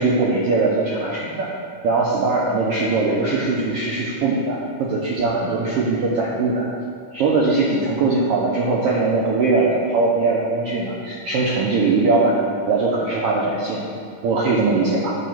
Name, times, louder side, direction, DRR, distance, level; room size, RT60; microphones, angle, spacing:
voice 1, 0.0-1.5 1.8-6.7 7.1-12.4 12.7-13.8 14.2-15.2, right 3 dB, 90° right, -3 dB, 1.3 m, -20 dB
8.6 x 3.0 x 5.8 m, 2.2 s
omnidirectional pair, 3.4 m